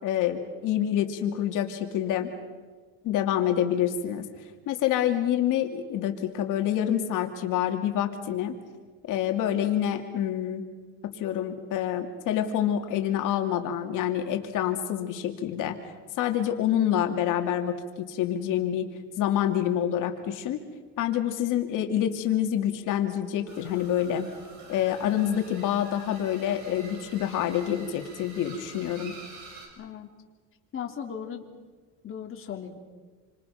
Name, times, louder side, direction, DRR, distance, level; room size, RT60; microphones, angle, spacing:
voice 1, 0.0-2.3 3.0-4.2 4.7-8.5 9.1-10.6 11.2-15.8 16.2-18.9 19.2-20.6 21.0-24.3 24.7-29.1, left 10 dB, 65° left, 5 dB, 2.6 m, -27 dB
sound 1, 23.5-29.7, right 3 dB, 55° right, 6.6 m, -47 dB
voice 2, 29.8-30.1 30.7-31.5 32.0-32.8, left 8 dB, 40° left, 2 dB, 3.1 m, -37 dB
28.0 x 25.5 x 5.8 m, 1.4 s
cardioid pair, 120°, 34 cm